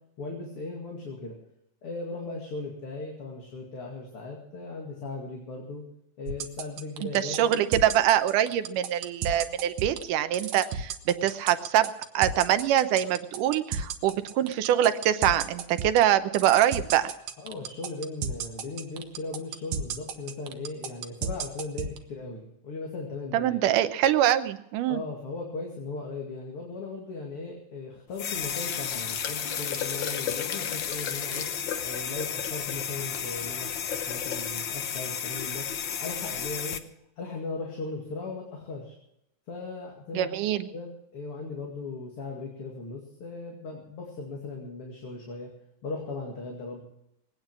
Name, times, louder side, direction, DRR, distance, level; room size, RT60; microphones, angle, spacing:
voice 1, 0.2-1.4 1.8-5.8 6.2-7.4 17.4-23.6 24.9-36.8 37.2-38.9 39.5-40.3 40.7-45.5 45.8-46.8, left 3 dB, 50° left, 0 dB, 2.9 m, -38 dB
sound 1, 6.3-22.0, right 6 dB, 70° right, 2.2 m, -32 dB
voice 2, 7.0-17.1 23.3-25.0 40.1-40.7, right 11 dB, 85° right, 11 dB, 2.4 m, -24 dB
sound 2, 28.1-36.8, left 8 dB, 85° left, 1.0 m, -32 dB
21.0 x 9.1 x 6.1 m, 0.79 s
omnidirectional pair, 3.6 m